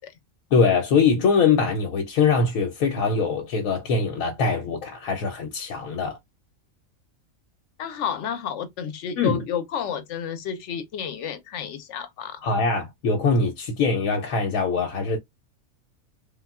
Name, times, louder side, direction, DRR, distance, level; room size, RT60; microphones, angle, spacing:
voice 1, 0.5-6.2 9.2-9.4 12.4-15.2, left 4 dB, 90° left, 1.0 m, -22 dB
voice 2, 7.8-12.4, left 8 dB, 70° left, 0.8 m, -31 dB
3.4 x 2.2 x 2.2 m
omnidirectional pair, 1.4 m